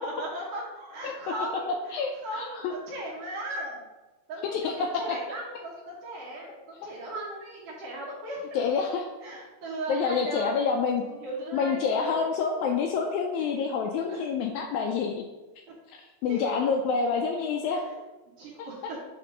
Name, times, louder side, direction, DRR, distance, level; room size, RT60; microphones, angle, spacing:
voice 1, 0.0-1.7 2.2-3.8 4.3-8.5 9.2-10.7 11.0-12.2 14.1-14.2 15.7-15.8 16.3-16.5 17.7-18.0 18.4-19.0, right 1 dB, 60° right, -7 dB, 1.9 m, -37 dB
voice 2, 1.9-2.7 4.5-5.2 8.5-9.0 9.9-11.0 11.5-15.2 15.9-17.8 18.6-18.7, left 5 dB, 80° left, 2 dB, 1.7 m, -27 dB
5.8 x 3.7 x 5.2 m, 1.1 s
omnidirectional pair, 3.7 m